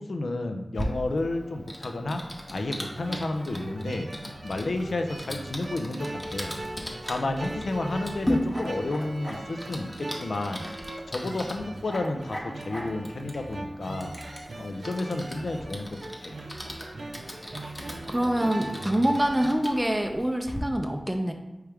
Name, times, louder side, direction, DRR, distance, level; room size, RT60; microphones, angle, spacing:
voice 1, 0.0-2.2 2.5-4.1 4.4-6.5 7.0-10.6 11.1-14.1 14.6-16.4, left 2 dB, 85° left, 5 dB, 0.4 m, -31 dB
Typing, 0.7-20.6, equal, 20° left, 0.8 m, -38 dB
sound 1, 2.5-19.5, right 2 dB, 85° right, 0.6 m, -40 dB
voice 2, 18.1-21.3, right 1 dB, 10° right, 4 dB, 0.4 m, -25 dB
4.6 x 3.1 x 3.4 m, 1.0 s
wide cardioid pair, 70°, 0 cm